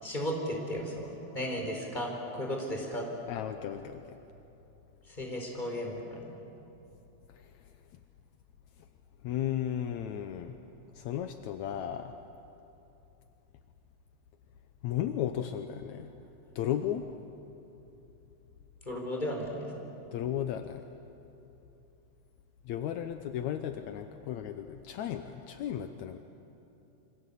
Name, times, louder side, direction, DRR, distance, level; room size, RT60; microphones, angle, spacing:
voice 1, 0.0-3.1 5.2-6.3 18.9-19.7, equal, 15° left, 0 dB, 4.4 m, -35 dB
voice 2, 3.3-4.2 7.4-7.5 9.2-10.6 11.0-12.2 14.8-16.1 16.6-17.1 20.1-20.8 22.7-26.2, left 10 dB, 75° left, 8 dB, 2.2 m, -34 dB
28.0 x 24.5 x 8.4 m, 2.9 s
omnidirectional pair, 3.4 m